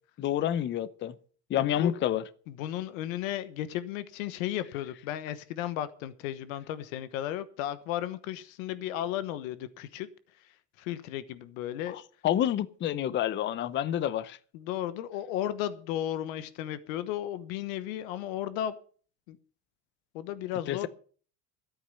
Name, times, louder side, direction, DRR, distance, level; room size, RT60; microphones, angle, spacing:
voice 1, 0.2-1.1 1.5-2.2 11.9-14.4 20.7-20.9, left 11 dB, 30° left, 0.6 m, -28 dB
voice 2, 1.6-1.9 2.5-10.1 10.8-12.0 14.5-18.8 19.3-19.4 20.1-20.9, left 12 dB, 85° left, 1.2 m, -34 dB
13.0 x 8.8 x 6.9 m
cardioid pair, 145°, 40 cm